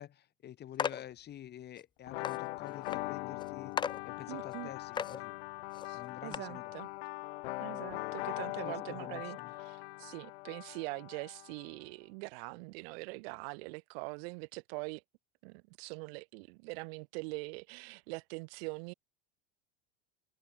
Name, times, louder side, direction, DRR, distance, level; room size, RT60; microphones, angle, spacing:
voice 1, 0.0-3.8 4.0-5.4 5.9-6.7 8.6-9.5, left 11 dB, 30° left, 5.6 m, -48 dB
sound 1, 0.8-1.0 1.8-1.9 2.2-2.4 2.9-3.0 3.4-3.5 3.8-4.0 4.5-4.6 4.9-5.2 5.7-5.9 6.3-6.4, left 7 dB, 15° left, 0.6 m, -35 dB
sound 2, 2.1-11.7, left 23 dB, 85° left, 3.2 m, -41 dB
voice 2, 4.3-4.7 5.8-6.9 7.6-9.4 9.7-15.0 15.4-18.9, right 30 dB, 70° right, 2.2 m, -43 dB
cardioid pair, 160°, 31 cm